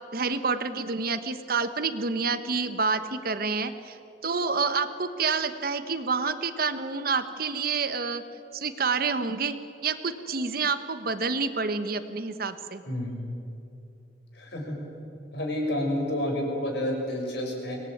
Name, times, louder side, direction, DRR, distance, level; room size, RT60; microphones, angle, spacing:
voice 1, 0.1-8.2 8.5-9.6 9.8-12.8, right 4 dB, 55° right, 11 dB, 1.2 m, -28 dB
voice 2, 12.9-13.2 14.3-14.8 15.3-17.8, left 1 dB, 70° left, 1 dB, 6.2 m, -29 dB
24.0 x 19.5 x 9.3 m, 2.7 s
head